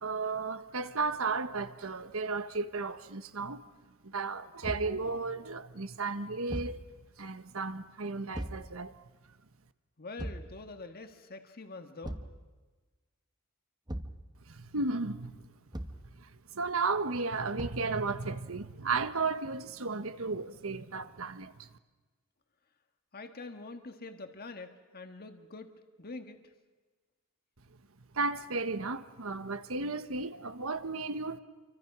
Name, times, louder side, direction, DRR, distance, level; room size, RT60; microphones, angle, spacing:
voice 1, 0.0-3.6 4.0-6.8 7.2-8.9 14.5-15.5 16.2-21.7 28.1-31.4, right 4 dB, 70° right, 1.3 m, -34 dB
Thump thud, 4.6-5.0 6.5-6.8 8.3-8.7 10.2-10.5 12.0-12.4 13.9-14.2 15.7-16.1 17.6-17.9, right 1 dB, 20° right, 1.4 m, -38 dB
voice 2, 10.0-12.2 23.1-24.7 24.9-25.7 26.0-26.4, left 3 dB, 45° left, 1.7 m, -45 dB
28.0 x 24.5 x 6.1 m
head